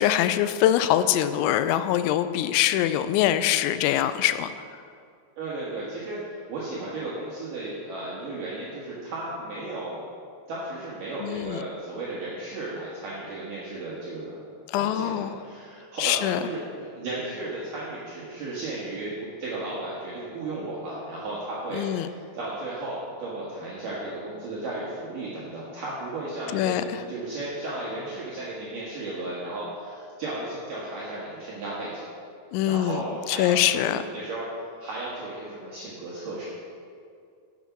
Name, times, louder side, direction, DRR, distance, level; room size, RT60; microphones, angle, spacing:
voice 1, 0.0-4.5 11.2-11.6 14.7-15.4 16.0-16.4 21.7-22.1 26.5-26.8 32.5-33.0 33.3-34.0, left 12 dB, 90° left, 11 dB, 2.9 m, -23 dB
voice 2, 5.4-6.2 6.5-10.0 10.5-14.4 14.7-32.1 32.6-34.5 34.8-36.4, right 2 dB, 60° right, -7 dB, 2.6 m, -34 dB
9.7 x 8.2 x 6.0 m, 2.4 s
omnidirectional pair, 5.2 m